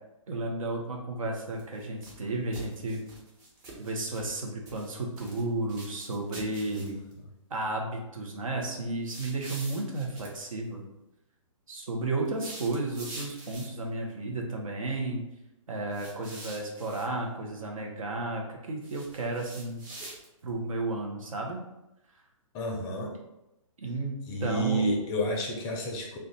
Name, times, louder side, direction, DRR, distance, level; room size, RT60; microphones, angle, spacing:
voice 1, 0.3-3.0 3.8-7.0 7.5-10.8 11.7-15.2 15.7-19.8 20.4-21.6 23.8-24.8, right 2 dB, 75° right, 0 dB, 0.8 m, -33 dB
sound 1, 1.5-2.2 2.5-4.4 4.7-5.4 5.7-7.1 9.0-10.3 12.3-13.9 15.9-17.1 18.8-20.5, right 2 dB, 35° right, 0.9 m, -46 dB
voice 2, 22.5-23.1 24.3-26.2, equal, 20° left, 0 dB, 0.5 m, -30 dB
2.5 x 2.2 x 3.9 m, 0.93 s
hypercardioid pair, 135°, 17 cm